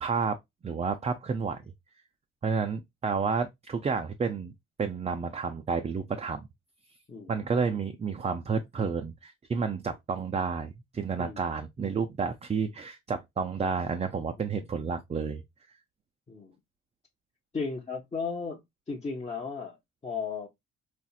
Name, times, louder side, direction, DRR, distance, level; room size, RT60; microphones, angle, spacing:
voice 1, 0.0-0.4 0.6-1.6 2.4-4.5 4.8-6.5 7.3-15.4, right 5 dB, 20° right, 0.4 m, -30 dB
voice 2, 17.5-18.6 18.9-20.5, left 5 dB, 20° left, 0.7 m, -35 dB
4.2 x 2.4 x 2.3 m
cardioid pair, 90°, 30 cm